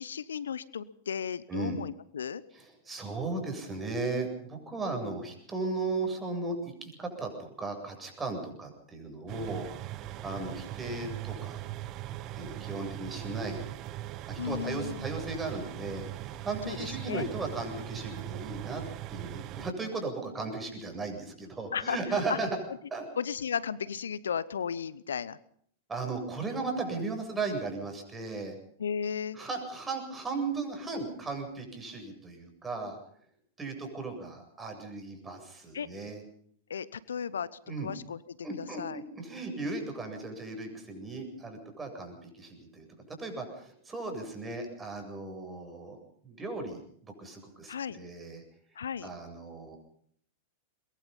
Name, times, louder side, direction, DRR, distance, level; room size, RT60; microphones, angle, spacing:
voice 1, 0.0-2.4 14.4-15.1 16.6-17.2 21.7-22.0 22.3-22.4 23.2-25.4 28.8-29.4 35.7-35.9 36.7-39.0 47.7-48.0 48.8-49.1, left 7 dB, 80° left, 18 dB, 0.9 m, -35 dB
voice 2, 2.5-6.6 6.8-9.8 10.2-11.6 12.3-13.7 14.3-18.8 19.1-22.5 22.9-23.0 25.9-28.5 29.3-33.0 33.6-36.2 37.7-37.9 38.4-46.0 46.2-48.4 49.0-49.8, right 3 dB, 15° right, 3 dB, 7.9 m, -36 dB
sound 1, 9.3-19.7, right 14 dB, 40° right, 1.1 m, -40 dB
23.0 x 22.0 x 5.6 m, 0.62 s
hypercardioid pair, 100°, 0 cm